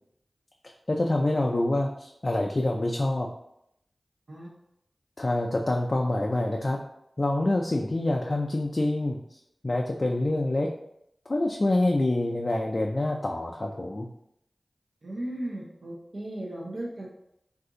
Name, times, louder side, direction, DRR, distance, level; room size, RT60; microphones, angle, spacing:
voice 1, 0.9-3.3 5.2-6.8 7.2-9.2 9.6-10.7 11.3-14.1, left 2 dB, 50° left, 0 dB, 0.3 m, -26 dB
voice 2, 15.0-17.1, right 1 dB, 65° right, -3 dB, 0.7 m, -36 dB
2.6 x 2.4 x 3.7 m, 0.79 s
cardioid pair, 40°, 0 cm